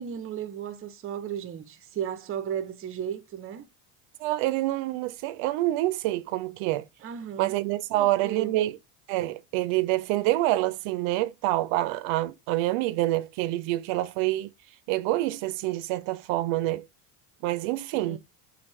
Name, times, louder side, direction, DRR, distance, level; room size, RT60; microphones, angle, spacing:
voice 1, 0.0-3.7 7.0-7.6 7.9-8.5 17.9-18.2, right 9 dB, 30° right, 0.5 m, -35 dB
voice 2, 4.2-6.9 7.4-8.8 9.1-14.5 14.9-16.8 17.4-18.2, right 16 dB, 70° right, 0.6 m, -27 dB
4.2 x 2.6 x 3.1 m
supercardioid pair, 90°, 48 cm